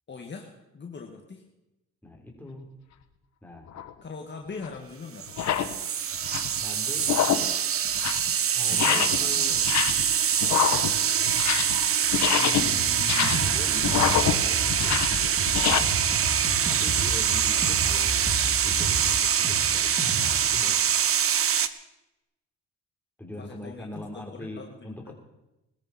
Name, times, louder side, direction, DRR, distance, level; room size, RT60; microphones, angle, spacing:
voice 1, 0.1-1.4 4.0-5.3 8.7-9.4 23.4-25.1, left 4 dB, 35° left, 2 dB, 1.9 m, -41 dB
voice 2, 2.0-2.7 3.4-3.7 6.6-7.1 8.5-9.6 12.4-16.4 16.7-20.9 23.2-25.1, left 1 dB, 5° left, 0 dB, 4.0 m, -42 dB
sound 1, 3.7-3.9 4.6-4.7 5.3-5.7 6.1-6.6 7.0-7.5 7.9-8.3 8.7-9.3 9.5-10.1 10.4-11.8 12.1-15.8, left 10 dB, 65° left, 1.2 m, -26 dB
sound 2, 5.2-21.7, right 8 dB, 45° right, 0.9 m, -25 dB
sound 3, 12.7-20.5, right 3 dB, 25° right, 5.6 m, -33 dB
21.0 x 13.0 x 4.4 m, 0.92 s
cardioid pair, 90°, 30 cm